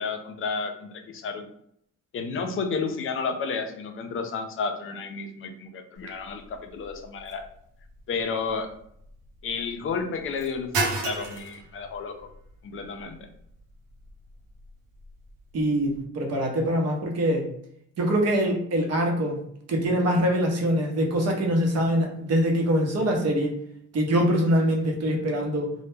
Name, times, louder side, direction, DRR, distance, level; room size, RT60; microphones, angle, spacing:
voice 1, 0.0-1.5 2.1-7.4 8.1-8.7 9.4-12.1 12.6-13.3, left 5 dB, 40° left, 5 dB, 0.4 m, -31 dB
sound 1, 6.0-16.0, right 3 dB, 85° right, 0.6 m, -37 dB
voice 2, 15.5-17.5 18.0-19.4 19.7-23.6 23.9-25.7, equal, 50° right, 1 dB, 0.7 m, -24 dB
2.1 x 2.0 x 3.1 m, 0.71 s
cardioid pair, 90°, 32 cm